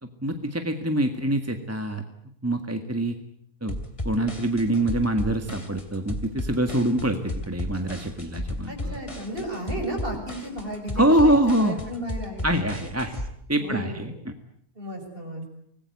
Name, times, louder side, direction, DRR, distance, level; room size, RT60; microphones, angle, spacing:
voice 1, 0.0-2.0 2.4-3.2 3.6-3.7 4.0-9.0 10.9-11.8 12.4-13.2 13.5-14.3, right 1 dB, 10° right, 6 dB, 1.7 m, -24 dB
sound 1, 3.7-13.3, left 1 dB, 20° left, 3.0 m, -34 dB
voice 2, 8.7-12.7 13.6-14.1 14.8-15.5, right 1 dB, 35° right, 3 dB, 7.0 m, -34 dB
25.5 x 20.0 x 9.5 m, 0.71 s
omnidirectional pair, 1.6 m